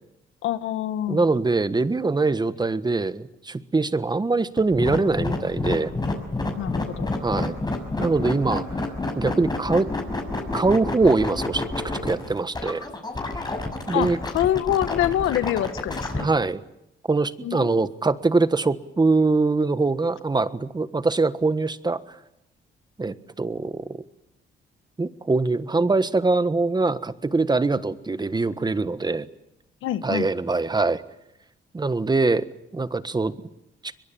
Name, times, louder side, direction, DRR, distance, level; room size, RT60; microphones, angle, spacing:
voice 1, 0.4-1.2 6.6-7.1 13.9-16.3 17.4-17.9 29.8-30.3, left 12 dB, 85° left, 12 dB, 1.6 m, -26 dB
voice 2, 1.1-5.9 7.2-7.5 8.0-8.8 9.1-9.9 10.5-11.7 12.0-12.8 13.9-14.2 16.2-16.6 17.1-22.2 23.0-24.0 25.0-29.3 30.0-31.0 31.7-32.5 32.7-33.3 33.8-33.9, right 3 dB, 20° right, 13 dB, 1.4 m, -23 dB
sound 1, 4.6-16.2, left 2 dB, 20° left, 6.2 m, -28 dB
22.5 x 22.5 x 9.1 m, 0.85 s
cardioid pair, 90°, 20 cm